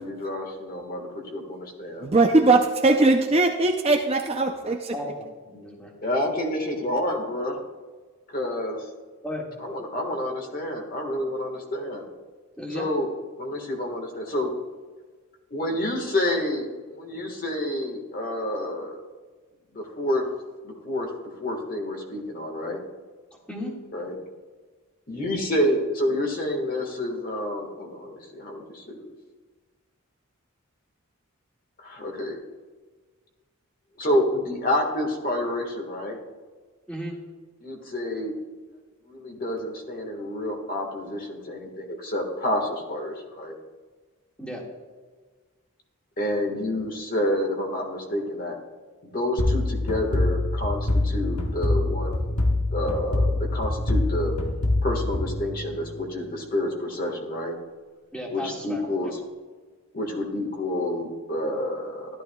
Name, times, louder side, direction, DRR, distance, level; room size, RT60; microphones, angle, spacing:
voice 1, 0.0-2.1 6.0-7.6 8.3-8.8 9.6-12.0 12.7-13.1 13.4-14.5 15.5-19.0 19.7-20.2 20.6-21.1 21.4-22.8 23.9-24.1 25.1-29.1 31.8-32.4 34.0-36.2 37.6-38.3 39.1-43.5 46.2-48.5 49.1-52.4 52.7-54.3 54.8-57.5 58.3-59.1 59.9-62.1, left 1 dB, 40° left, 2 dB, 1.5 m, -28 dB
voice 2, 2.0-4.9, right 2 dB, 25° right, 3 dB, 0.5 m, -20 dB
voice 3, 5.4-6.0 9.2-9.6 12.6-12.9 23.5-23.8 36.9-37.2 44.4-44.7 58.1-59.1, equal, 5° left, -2 dB, 1.8 m, -35 dB
sound 1, 49.4-56.0, left 2 dB, 75° left, 1.1 m, -25 dB
14.0 x 11.5 x 2.3 m, 1.4 s
head